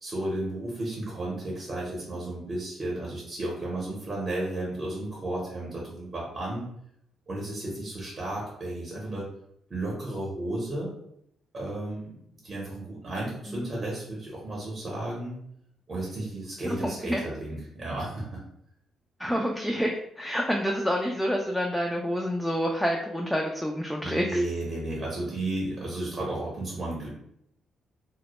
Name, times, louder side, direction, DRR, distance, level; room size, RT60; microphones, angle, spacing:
voice 1, 0.0-6.7 7.3-9.3 9.7-10.9 11.5-12.2 12.4-15.4 15.9-18.4 24.0-27.1, right 1 dB, 35° right, -4 dB, 0.8 m, -33 dB
voice 2, 16.6-17.2 19.2-24.4, equal, ahead, 0 dB, 0.3 m, -28 dB
2.1 x 2.0 x 2.9 m, 0.73 s
cardioid pair, 90°, 0 cm